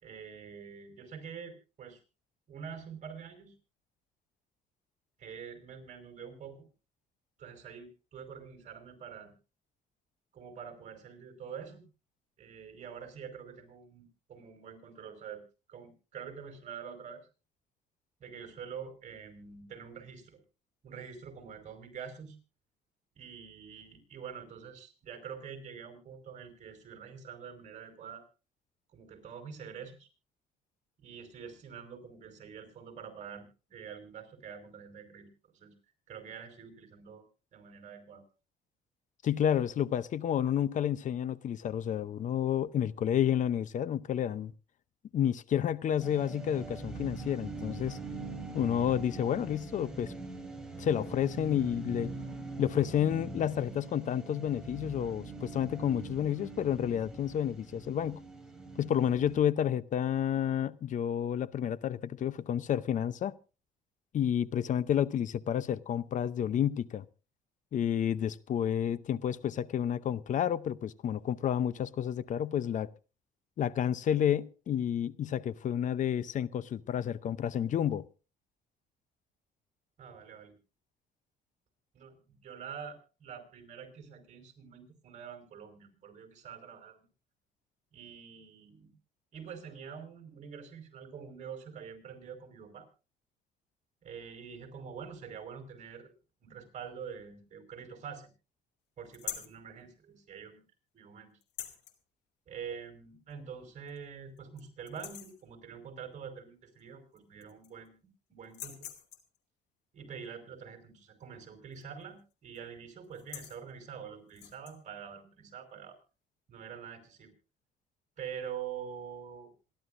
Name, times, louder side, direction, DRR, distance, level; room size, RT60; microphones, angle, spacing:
voice 1, 0.0-2.0 2.5-3.5 5.2-6.7 7.4-9.3 10.3-11.8 12.4-15.4 15.7-17.2 18.2-20.4 20.8-22.4 23.1-28.2 28.9-30.1 31.0-35.7 36.1-37.2 37.5-38.2 80.0-80.6 81.9-87.0 87.9-88.9 89.3-92.9 94.0-96.1 96.4-98.3 99.0-100.6 100.9-101.4 102.5-108.9 109.9-116.0 116.5-117.3 118.2-119.5, right 7 dB, 45° right, 5.1 m, -46 dB
voice 2, 39.2-44.5 45.1-48.0 48.5-50.1 50.8-52.1 52.6-58.2 58.8-63.3 64.1-67.1 67.7-72.9 73.6-78.0, left 9 dB, 50° left, 0.7 m, -30 dB
sound 1, 46.0-59.4, right 3 dB, 5° right, 4.5 m, -43 dB
sound 2, 99.1-99.6 101.4-102.0 103.3-103.4 103.9-104.0 104.4-104.6 104.9-105.4 106.8-106.9 107.2-107.9 108.4-109.4 111.7-112.0 112.3-112.6 113.0-113.6 114.3-114.8, left 11 dB, 80° left, 2.4 m, -44 dB
26.5 x 12.0 x 2.6 m
cardioid pair, 110°, 17 cm